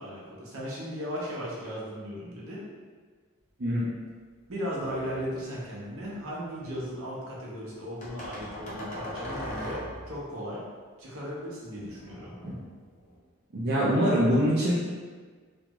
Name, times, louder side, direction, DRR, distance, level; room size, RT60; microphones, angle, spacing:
voice 1, 0.0-2.6 4.5-10.6 11.0-12.3, equal, 75° right, -5 dB, 0.8 m, -36 dB
sound 1, 4.8-5.4 5.9-6.8 8.0-10.2 11.7-13.2, equal, 35° left, 0.5 m, -40 dB
voice 2, 13.5-14.7, equal, 50° right, -8 dB, 0.5 m, -24 dB
2.5 x 2.3 x 2.9 m, 1.5 s
head